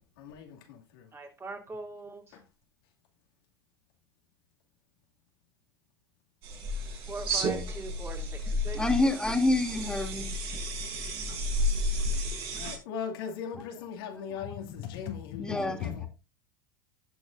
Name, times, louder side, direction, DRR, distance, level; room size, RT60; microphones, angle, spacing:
voice 1, 0.2-1.1 2.3-2.4 12.5-16.1, left 7 dB, 70° left, 2.5 m, -38 dB
voice 2, 1.1-2.4 7.1-8.8, right 2 dB, 20° right, 3.1 m, -41 dB
sound 1, 6.4-12.8, equal, 50° right, 5.1 m, -32 dB
voice 3, 8.7-10.3 12.2-12.4 14.3-14.5 15.4-16.1, left 2 dB, 5° left, 2.8 m, -28 dB
18.0 x 6.2 x 2.6 m
hypercardioid pair, 90°, 12 cm